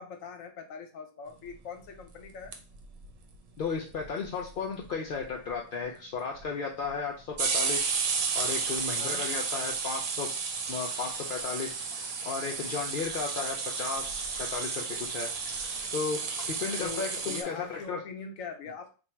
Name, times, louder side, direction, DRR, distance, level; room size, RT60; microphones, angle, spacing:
voice 1, 0.0-2.5 9.0-9.2 16.8-18.9, left 5 dB, 80° left, 6 dB, 1.1 m, -42 dB
sound 1, 2.2-3.1 3.3-3.4 3.6-3.7 3.9-4.5 4.8-4.9 5.2-5.5 6.4-6.5 7.3-17.4, right 5 dB, 80° right, 1.1 m, -32 dB
voice 2, 3.6-7.9 8.3-10.3 10.7-11.8 12.2-15.3 15.9-16.2 16.5-18.0, left 5 dB, 60° left, 0 dB, 0.5 m, -34 dB
sound 2, 10.6-17.8, left 3 dB, 35° left, 0.9 m, -51 dB
3.5 x 2.3 x 4.3 m, 0.35 s
omnidirectional pair, 1.4 m